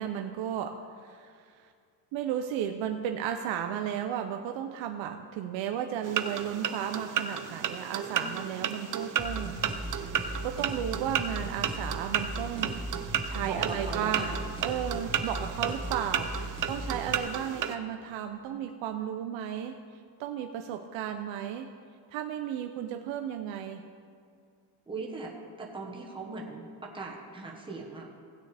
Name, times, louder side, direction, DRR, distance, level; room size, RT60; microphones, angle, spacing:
voice 1, 0.0-1.7 2.1-9.6 10.4-12.8 13.2-14.3 14.6-19.8 20.2-21.7 22.1-23.8, right 9 dB, 80° right, 5 dB, 0.7 m, -34 dB
sound 1, 6.0-17.8, right 9 dB, 45° right, 0.6 m, -33 dB
voice 2, 8.0-8.5 13.4-14.4 24.9-25.3 25.6-28.1, right 3 dB, 10° right, -1 dB, 1.2 m, -39 dB
sound 2, 9.2-17.2, right 1 dB, 10° left, 1.2 m, -38 dB
16.5 x 8.8 x 3.4 m, 2.2 s
cardioid pair, 150°, 45 cm